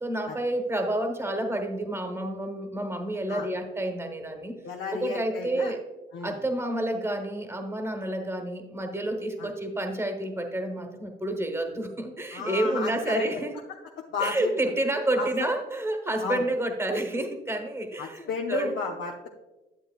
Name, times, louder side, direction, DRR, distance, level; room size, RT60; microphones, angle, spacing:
voice 1, 0.0-4.6 4.9-5.8 6.2-13.6 14.2-18.7, right 1 dB, 10° right, 5 dB, 1.2 m, -29 dB
voice 2, 4.6-5.7 6.1-6.4 9.4-9.5 12.3-13.4 14.1-14.5 15.2-15.5 16.2-16.4 18.0-19.3, left 4 dB, 70° left, 0 dB, 0.7 m, -32 dB
10.0 x 7.8 x 2.4 m, 1.1 s
cardioid pair, 90°, 20 cm